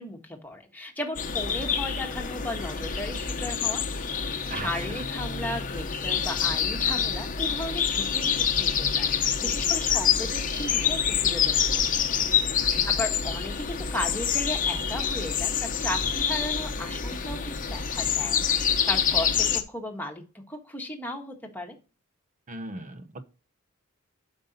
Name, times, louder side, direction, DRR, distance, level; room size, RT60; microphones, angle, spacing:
voice 1, 0.0-3.8 4.5-11.9 12.9-21.7, left 1 dB, 10° left, 2 dB, 1.4 m, -35 dB
sound 1, 1.2-19.6, left 7 dB, 40° left, 0.8 m, -27 dB
voice 2, 4.5-5.0 12.7-12.8 22.5-23.2, right 2 dB, 35° right, 11 dB, 0.9 m, -38 dB
8.0 x 5.5 x 4.1 m, 0.33 s
head